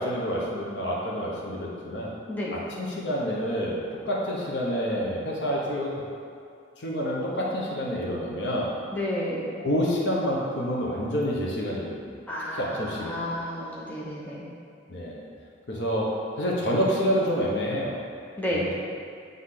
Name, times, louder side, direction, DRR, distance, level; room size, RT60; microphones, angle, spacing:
voice 1, 0.0-2.1 2.5-6.0 6.8-8.8 9.6-12.2 12.5-13.3 14.9-15.2 15.7-18.0 18.5-18.7, equal, 65° left, -3 dB, 1.1 m, -28 dB
voice 2, 8.9-9.5 12.3-14.5 18.4-18.6, left 1 dB, 10° left, -6 dB, 0.7 m, -31 dB
8.1 x 3.6 x 3.8 m, 2.3 s
head